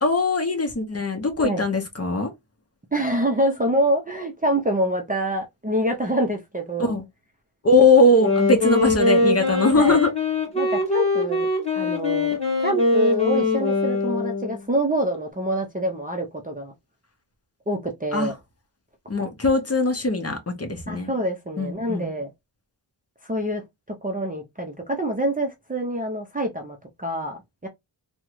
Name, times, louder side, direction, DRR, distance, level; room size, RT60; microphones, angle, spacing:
voice 1, 0.0-2.3 6.8-7.0 7.6-10.1 18.1-18.3 19.1-21.1 21.6-22.1, left 2 dB, 30° left, 0.7 m, -20 dB
voice 2, 2.9-6.9 9.7-10.0 10.6-11.5 11.7-16.7 17.7-18.3 20.9-22.3 23.2-23.6 24.0-27.7, right 1 dB, 20° right, 0.4 m, -26 dB
Wind instrument woodwind instrument, 8.1-14.6, left 3 dB, 15° left, 1.8 m, -22 dB
3.5 x 2.1 x 3.0 m
wide cardioid pair, 115°, 49 cm